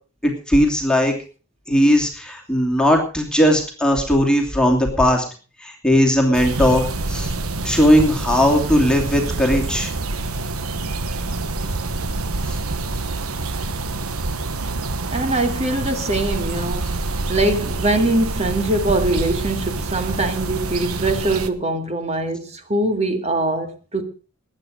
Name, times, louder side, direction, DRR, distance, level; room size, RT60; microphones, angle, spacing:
voice 1, 0.2-1.2 1.7-5.2 5.6-7.3 7.6-9.9 12.4-12.6, equal, 5° left, 2.8 m, -18 dB
sound 1, 6.3-21.5, right 3 dB, 90° right, 1.3 m, -26 dB
voice 2, 15.1-24.0, right 2 dB, 30° right, 2.1 m, -22 dB
21.5 x 8.9 x 5.1 m
head